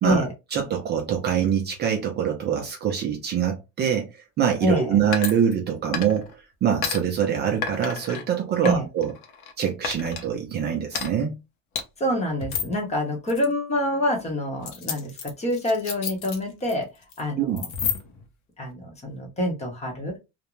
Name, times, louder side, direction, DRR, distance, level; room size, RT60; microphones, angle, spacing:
voice 1, 0.5-9.1 9.6-11.4 17.4-17.6, right 8 dB, 30° right, 0.5 m, -24 dB
voice 2, 4.6-5.0 8.6-8.9 12.0-16.9 17.2-17.6 18.6-20.2, left 1 dB, 20° left, 0.8 m, -26 dB
sound 1, 5.1-6.3 6.8-7.0 7.6-8.2 8.6-9.5 9.8-10.2 10.9-11.1 11.7-11.8 12.4-12.8 13.3-13.4 14.6-16.7 17.0-17.2 17.6-18.2, left 6 dB, 60° left, 0.8 m, -30 dB
2.5 x 2.1 x 3.0 m
cardioid pair, 155°, 33 cm